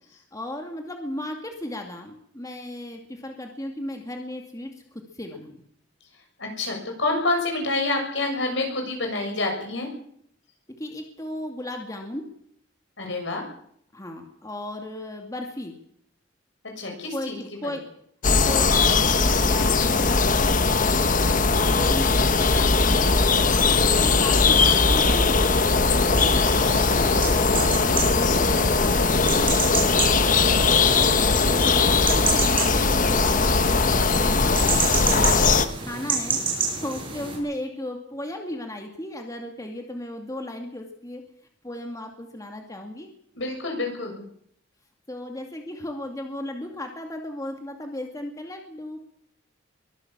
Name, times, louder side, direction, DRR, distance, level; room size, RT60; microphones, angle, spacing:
voice 1, 0.3-5.6 10.8-12.3 13.9-15.8 17.1-17.9 18.4-20.9 21.5-23.1 23.8-25.7 26.0-29.3 29.7-34.3 34.7-35.5 35.8-36.4 36.7-41.2 41.6-43.1 45.1-49.1, left 1 dB, 20° left, 3 dB, 2.2 m, -35 dB
voice 2, 6.4-9.9 13.0-13.4 16.8-17.4 23.7-24.1 43.3-44.2, left 2 dB, 70° left, 3 dB, 7.2 m, -28 dB
sound 1, 18.2-35.7, left 4 dB, 45° left, 1.2 m, -20 dB
sound 2, 26.2-37.4, right 5 dB, 30° right, 7.7 m, -30 dB
23.0 x 16.0 x 7.4 m, 0.68 s
head